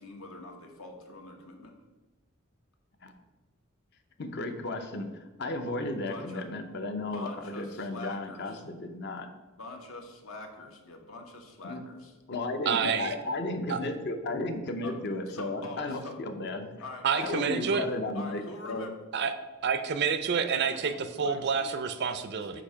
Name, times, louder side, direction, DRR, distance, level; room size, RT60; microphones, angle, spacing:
voice 1, 0.0-1.7 6.0-6.7 7.1-8.6 9.6-12.1 14.8-14.9 15.3-16.1 16.8-17.8 18.1-18.9 20.6-22.2 22.5-22.6, left 2 dB, 70° left, 3 dB, 1.1 m, -44 dB
voice 2, 4.2-9.3 11.6-11.8 12.3-16.6 17.2-18.9, left 2 dB, 50° left, 6 dB, 0.7 m, -34 dB
voice 3, 12.7-13.1 13.7-13.8 17.0-17.8 19.1-19.3 19.6-22.6, right 6 dB, 50° right, 10 dB, 0.4 m, -28 dB
8.3 x 2.8 x 5.5 m, 1.2 s
head